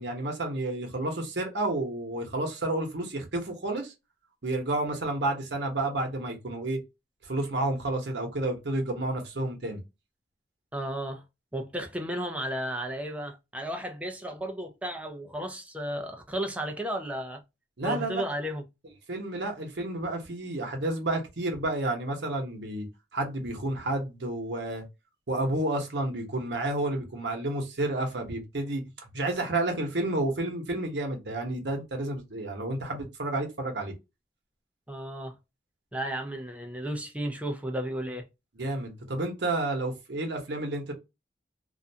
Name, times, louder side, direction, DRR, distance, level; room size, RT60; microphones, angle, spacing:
voice 1, 0.0-3.9 4.4-6.8 7.3-9.8 17.8-18.2 19.1-22.9 23.1-24.8 25.3-33.9 38.6-40.9, right 2 dB, 80° right, 0.9 m, -30 dB
voice 2, 10.7-11.2 11.5-17.4 17.8-18.6 34.9-35.3 35.9-38.3, right 1 dB, 10° right, 0.4 m, -33 dB
2.5 x 2.2 x 2.6 m
head